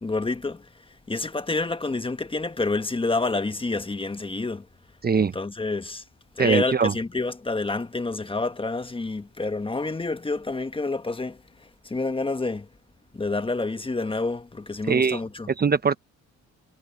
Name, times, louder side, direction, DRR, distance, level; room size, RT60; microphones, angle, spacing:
voice 1, 0.0-0.7 1.1-4.7 5.2-6.0 6.4-12.7 13.1-15.5, left 3 dB, 15° left, 1.3 m, -28 dB
voice 2, 5.0-5.3 6.4-6.9 14.9-15.2 15.6-16.0, right 5 dB, 30° right, 1.0 m, -21 dB
cardioid pair, 90°, 30 cm